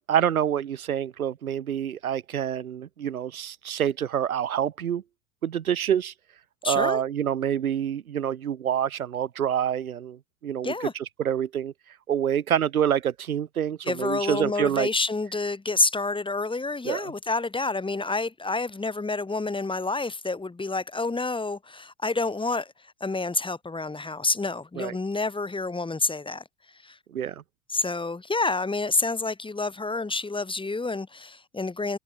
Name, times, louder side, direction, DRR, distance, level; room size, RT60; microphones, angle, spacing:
voice 1, 0.0-5.0 5.4-6.1 6.6-11.7 12.1-14.9 16.8-17.1 24.8-24.9 27.1-27.4, right 9 dB, 80° right, 2.1 m, -27 dB
voice 2, 6.6-7.0 10.6-10.9 13.8-26.4 26.7-27.0 27.7-32.0, left 3 dB, 10° left, 3.4 m, -28 dB
figure-of-eight pair, 75°, 42 cm